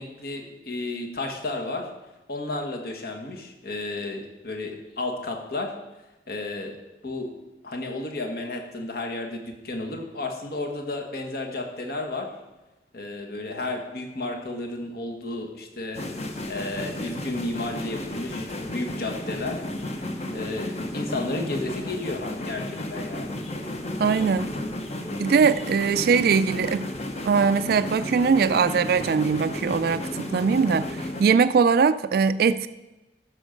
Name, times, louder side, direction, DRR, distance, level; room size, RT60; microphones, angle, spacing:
voice 1, 0.0-1.9 2.3-5.7 6.3-6.8 7.0-7.3 7.6-12.3 12.9-16.1 16.5-19.6 20.3-23.4, left 2 dB, 60° left, 2 dB, 1.4 m, -32 dB
sound 1, 15.9-31.2, left 1 dB, 40° left, 1.0 m, -33 dB
voice 2, 24.0-24.5 25.2-26.9 27.2-32.7, right 5 dB, 60° right, 12 dB, 0.3 m, -21 dB
14.0 x 6.3 x 5.2 m, 1.1 s
head